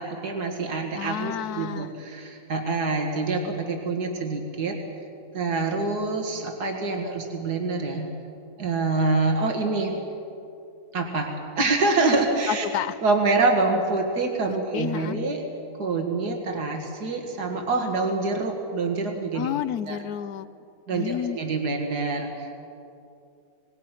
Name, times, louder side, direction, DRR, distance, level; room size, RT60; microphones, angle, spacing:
voice 1, 0.0-4.8 5.3-8.1 8.6-9.9 10.9-12.6 13.0-15.4 15.8-19.5 19.9-20.0 20.9-22.6, right 3 dB, 75° right, 2 dB, 2.5 m, -26 dB
voice 2, 0.9-1.9 12.5-13.0 14.5-15.2 19.3-20.5 20.9-21.4, left 10 dB, 75° left, 16 dB, 1.2 m, -30 dB
26.0 x 20.5 x 5.9 m, 2.5 s
omnidirectional pair, 1.7 m